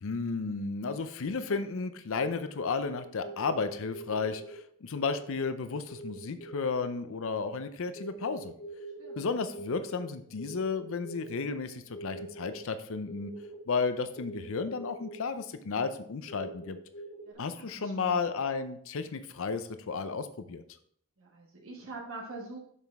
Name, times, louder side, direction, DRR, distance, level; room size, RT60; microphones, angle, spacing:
voice 1, 0.0-8.5 9.2-13.3 13.7-16.8 17.4-20.6, left 4 dB, 65° left, 10 dB, 0.5 m, -33 dB
sound 1, 2.6-4.6 4.9-5.5 5.9-6.8 7.9-9.2 9.5-11.6 11.8-12.6 13.1-13.6 14.2-15.2 15.8-17.3, right 2 dB, 35° left, 1.3 m, -44 dB
voice 2, 9.0-9.3 17.2-18.2 21.2-22.6, right 2 dB, 65° right, -2 dB, 1.3 m, -44 dB
7.3 x 5.9 x 3.5 m, 0.65 s
head